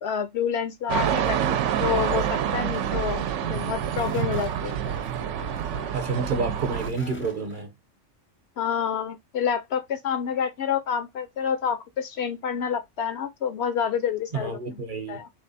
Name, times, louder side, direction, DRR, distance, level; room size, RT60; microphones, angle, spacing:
voice 1, 0.0-4.8 8.6-14.8 15.1-15.3, left 8 dB, 65° left, 0.8 m, -28 dB
sound 1, 0.9-6.9, right 9 dB, 80° right, 0.9 m, -27 dB
sound 2, 2.0-7.6, left 2 dB, 15° left, 0.4 m, -43 dB
voice 2, 5.9-7.7 14.3-15.2, right 4 dB, 45° right, 0.9 m, -29 dB
3.4 x 3.3 x 4.1 m
omnidirectional pair, 1.3 m